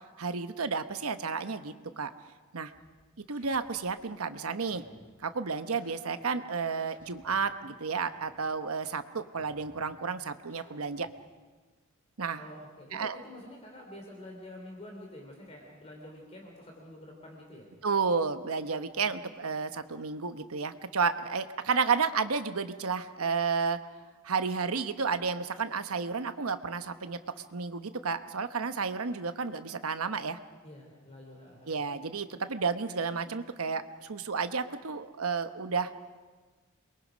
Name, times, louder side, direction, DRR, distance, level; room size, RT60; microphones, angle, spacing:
voice 1, 0.2-2.1 2.5-2.7 3.3-4.8 5.2-11.1 12.2-12.4 12.9-13.2 17.8-23.8 24.2-30.4 31.7-35.9, right 5 dB, 80° right, 9 dB, 1.0 m, -31 dB
sound 1, 2.7-4.0 4.5-5.2 5.7-7.6 8.1-10.0 10.5-11.2, equal, 10° left, 5.6 m, -60 dB
voice 2, 12.4-17.7 30.6-31.8, left 1 dB, 30° left, 0 dB, 3.2 m, -48 dB
28.5 x 22.5 x 5.1 m, 1.4 s
head